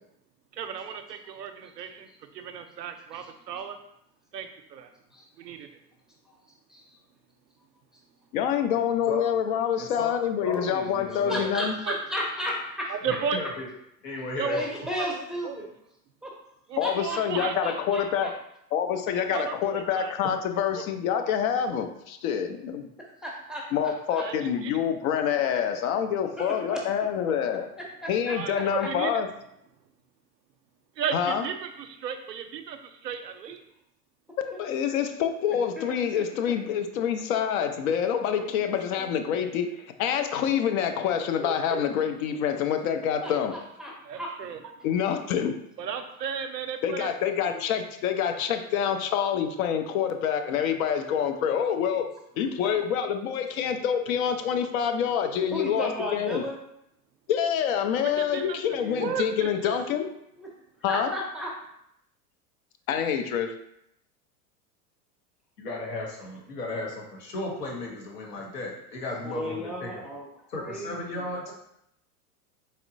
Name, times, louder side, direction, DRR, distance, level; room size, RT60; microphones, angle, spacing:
voice 1, 0.5-3.8 4.3-4.9 5.4-5.7 11.9-12.0 12.9-13.4 14.4-14.6 14.9-15.1 15.4-15.6 16.7-17.5 19.3-20.1 20.8-20.9 24.2-24.7 28.3-29.1 31.0-33.6 44.1-44.6 45.8-47.1 58.3-58.6 59.0-59.8, right 7 dB, 90° right, 7 dB, 0.6 m, -34 dB
voice 2, 8.3-11.8 16.8-18.3 18.7-22.9 23.7-27.7 28.1-29.3 31.1-31.5 34.4-43.5 44.8-45.5 46.8-52.1 52.4-56.4 57.3-60.1 60.8-61.1 62.9-63.6, left 8 dB, 60° left, 7 dB, 0.6 m, -27 dB
voice 3, 9.8-10.1 10.4-11.5 13.0-13.7 14.0-14.6 65.6-70.0 70.5-71.5, left 2 dB, 75° left, -2 dB, 1.4 m, -35 dB
voice 4, 11.1-12.9 14.1-15.7 16.2-16.3 16.8-18.3 23.0-23.7 24.1-24.2 26.4-26.8 28.0-28.9 34.5-34.6 35.8-36.5 38.2-39.4 41.4-41.8 43.2-44.3 47.4-47.6 55.2-56.6 58.1-59.2 60.4-60.5 60.9-61.5 69.2-70.3 70.6-71.5, equal, ahead, -2 dB, 0.5 m, -35 dB
4.2 x 3.2 x 2.6 m, 0.76 s
hypercardioid pair, 90°, 48 cm